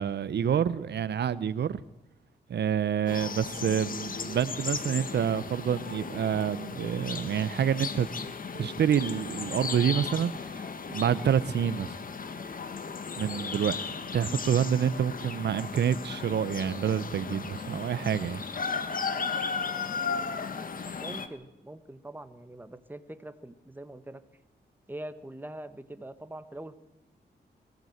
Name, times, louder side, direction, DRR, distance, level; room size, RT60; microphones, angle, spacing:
voice 1, 0.0-1.8 2.5-8.1 8.5-11.9 13.2-18.4, right 8 dB, 80° right, 16 dB, 0.8 m, -28 dB
sound 1, 3.1-21.3, left 5 dB, 55° left, 1.8 m, -36 dB
voice 2, 21.0-24.2 24.9-26.7, right 1 dB, 10° right, 11 dB, 1.4 m, -43 dB
22.5 x 15.5 x 8.0 m, 0.97 s
wide cardioid pair, 100°, 17 cm